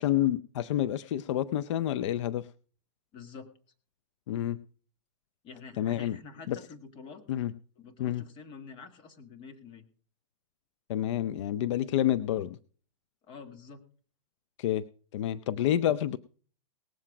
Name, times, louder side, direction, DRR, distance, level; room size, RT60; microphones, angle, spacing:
voice 1, 0.0-2.5 4.3-4.6 5.8-6.2 6.5-6.6 7.3-7.5 8.0-8.2 10.9-12.6 14.6-14.8 15.1-16.2, left 12 dB, 60° left, 15 dB, 0.6 m, -28 dB
voice 2, 3.1-3.5 5.4-7.2 7.8-9.9 13.2-13.8, left 5 dB, 30° left, 7 dB, 1.9 m, -47 dB
19.0 x 7.7 x 4.8 m, 0.42 s
hypercardioid pair, 140°, 17 cm